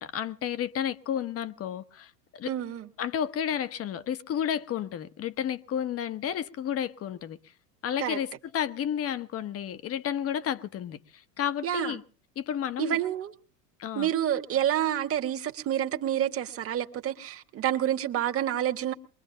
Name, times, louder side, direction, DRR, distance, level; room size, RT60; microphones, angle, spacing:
voice 1, 0.0-2.5 3.0-7.4 7.8-12.0 12.4-13.0 13.8-14.1, left 9 dB, 30° left, 1.0 m, -32 dB
voice 2, 2.4-2.9 8.0-8.2 11.6-11.9 12.8-13.3 13.9-18.9, right 11 dB, 30° right, 1.6 m, -28 dB
22.5 x 22.0 x 2.7 m
hypercardioid pair, 110°, 48 cm